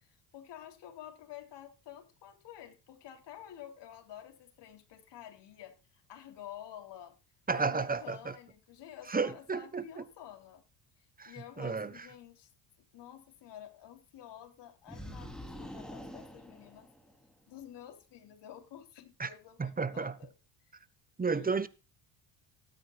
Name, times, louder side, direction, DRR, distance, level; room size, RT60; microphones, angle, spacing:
voice 1, 0.0-7.1 7.5-10.6 11.2-12.5 12.9-16.9 17.5-20.3 21.2-21.7, left 11 dB, 60° left, 3.3 m, -50 dB
voice 2, 7.5-8.3 9.1-10.0 11.2-11.3 11.6-12.1 19.2-19.3 19.6-20.1 21.2-21.7, right 4 dB, 20° right, 1.1 m, -32 dB
sound 1, 14.9-17.3, equal, ahead, 3.1 m, -46 dB
18.0 x 9.1 x 2.4 m
supercardioid pair, 80°, 48 cm